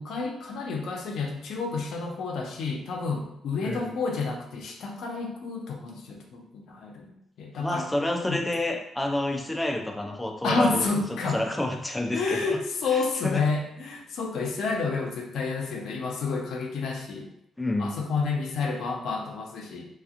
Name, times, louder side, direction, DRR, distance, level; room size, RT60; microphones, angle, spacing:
voice 1, 0.0-7.1 7.4-7.9 8.3-8.4 10.4-11.4 12.1-17.3 17.8-19.9, left 4 dB, 70° left, 2 dB, 0.5 m, -29 dB
voice 2, 3.6-4.0 7.6-12.6 12.9-13.4 17.6-18.0, left 1 dB, 10° left, 2 dB, 0.3 m, -29 dB
2.8 x 2.3 x 2.4 m, 0.80 s
cardioid pair, 90°, 0 cm